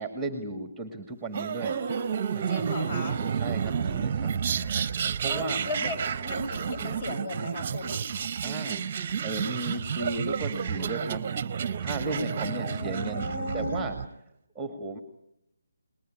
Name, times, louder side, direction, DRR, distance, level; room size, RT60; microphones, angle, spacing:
voice 1, 0.0-1.8 2.3-2.6 3.4-4.3 5.2-5.9 8.4-8.8 9.2-11.3 11.8-14.0 14.6-15.0, right 3 dB, 5° right, 8 dB, 1.9 m, -35 dB
sound 1, 1.3-14.1, right 7 dB, 30° right, 1.0 m, -31 dB
voice 2, 1.7-2.1 2.5-3.2 5.3-8.0 12.2-14.0, left 2 dB, 35° left, 6 dB, 5.6 m, -36 dB
29.5 x 20.5 x 9.9 m, 0.82 s
figure-of-eight pair, 150°, 0 cm